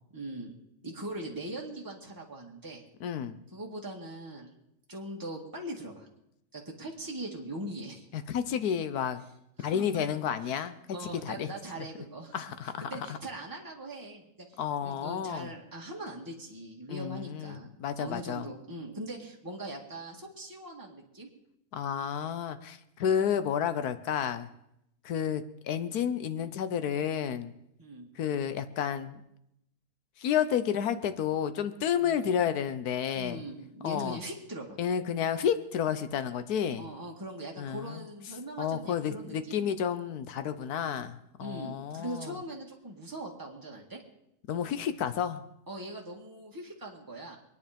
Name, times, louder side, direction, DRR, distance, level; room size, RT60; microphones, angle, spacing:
voice 1, 0.1-0.5 0.8-2.8 3.5-4.5 4.9-6.1 6.5-8.1 9.6-10.1 10.4-10.6 10.9-12.4 12.8-21.3 27.8-28.1 32.0-32.2 33.1-34.8 36.8-39.7 40.8-40.9 41.4-44.0 45.7-47.4, right 1 dB, 15° right, -2 dB, 2.1 m, -41 dB
voice 2, 3.0-3.4 8.1-9.2 9.6-11.5 12.3-13.2 14.6-15.5 16.9-18.5 21.7-24.5 25.0-27.5 28.1-29.2 30.2-33.4 33.8-34.2 34.8-36.9 37.6-38.1 38.6-42.4 44.5-45.4, left 8 dB, 80° left, 11 dB, 1.4 m, -31 dB
23.5 x 10.0 x 5.2 m, 0.80 s
omnidirectional pair, 1.6 m